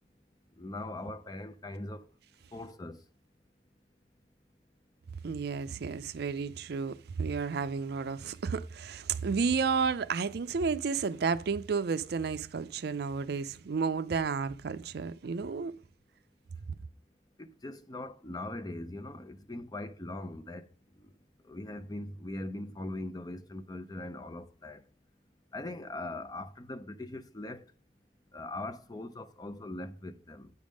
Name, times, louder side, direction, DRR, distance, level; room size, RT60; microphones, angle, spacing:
voice 1, 0.6-2.0 2.5-3.0 17.4-20.7 21.5-24.8 25.5-27.7 28.3-30.5, left 2 dB, 20° left, 0.5 m, -41 dB
voice 2, 5.2-15.7, right 5 dB, 60° right, 0.4 m, -32 dB
9.4 x 3.6 x 6.2 m
head